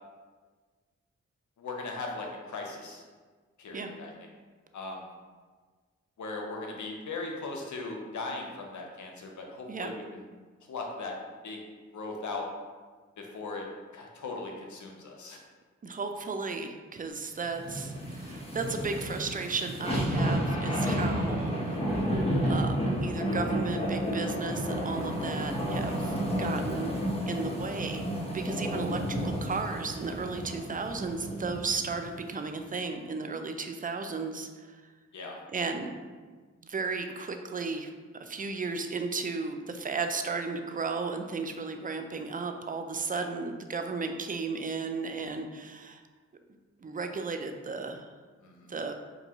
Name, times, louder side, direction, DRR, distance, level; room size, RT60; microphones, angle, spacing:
voice 1, 1.6-3.0 3.6-4.1 4.7-5.1 6.2-10.2 10.7-11.2 11.4-11.6 11.9-12.5 13.2-13.7 13.9-15.4 35.1-35.4 43.1-43.3 48.4-48.7, left 3 dB, 75° left, 1 dB, 0.7 m, -38 dB
voice 2, 15.8-21.8 22.5-26.9 27.3-34.8 35.5-35.9 36.7-46.0 46.8-48.1 48.7-48.9, right 4 dB, 30° right, 6 dB, 0.4 m, -34 dB
sound 1, 17.5-32.0 32.4-32.5, equal, 20° left, 1.2 m, -31 dB
4.5 x 2.6 x 2.9 m, 1.4 s
supercardioid pair, 40°, 30 cm